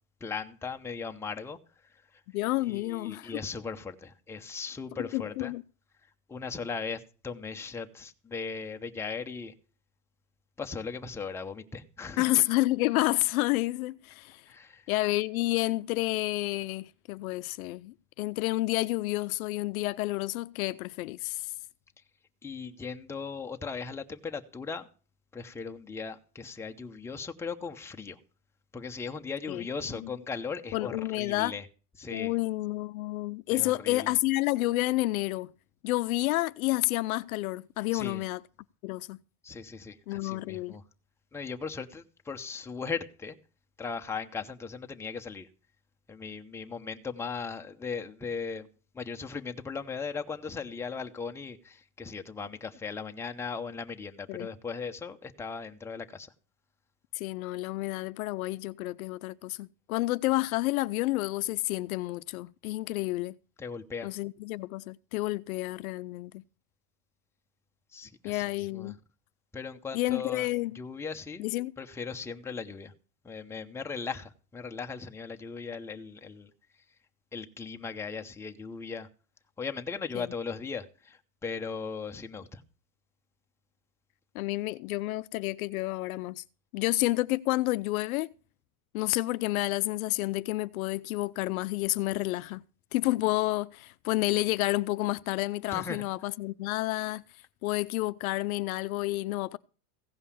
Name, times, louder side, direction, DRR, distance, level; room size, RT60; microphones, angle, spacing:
voice 1, 0.2-1.6 2.7-5.5 6.3-9.5 10.6-12.3 14.5-14.8 22.4-24.9 25.3-28.2 28.7-31.7 32.0-32.3 33.5-34.1 37.9-38.2 39.4-40.8 41.3-43.4 43.8-45.5 46.1-48.7 48.9-56.3 63.6-64.1 67.9-68.4 68.7-68.9 69.5-70.5 70.7-71.5 71.8-72.9 73.2-76.5 77.3-79.1 79.6-82.6 95.7-96.0, left 5 dB, 5° left, 0.8 m, -38 dB
voice 2, 2.3-3.4 5.0-5.6 12.2-14.4 14.9-21.5 29.5-30.1 30.7-31.5 32.1-35.5 35.8-38.4 38.8-39.2 40.1-40.8 54.3-54.5 57.1-63.4 64.0-66.4 68.2-69.0 69.9-70.8 71.4-71.7 80.1-80.3 84.3-86.4 86.7-88.3 88.9-92.6 92.9-97.2 97.6-99.6, left 19 dB, 60° left, 0.6 m, -30 dB
16.0 x 5.5 x 8.4 m
supercardioid pair, 140°, 47 cm